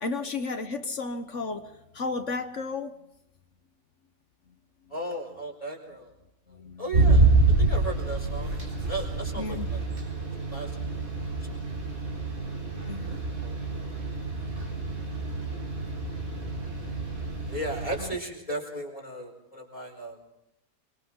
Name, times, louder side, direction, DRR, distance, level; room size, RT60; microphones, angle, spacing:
voice 1, 0.0-2.9 6.5-6.8 9.4-9.7 12.9-13.2 18.0-18.2, left 3 dB, 50° left, 9 dB, 1.4 m, -33 dB
voice 2, 4.9-6.1 6.5-7.3 7.6-8.5 8.9-9.8 10.5-10.8 11.4-11.5 13.4-13.5 17.5-20.2, right 1 dB, 20° left, 1 dB, 4.9 m, -35 dB
sound 1, 6.9-18.0, right 3 dB, 65° right, 4.5 m, -27 dB
28.5 x 24.0 x 3.8 m, 0.86 s
omnidirectional pair, 1.6 m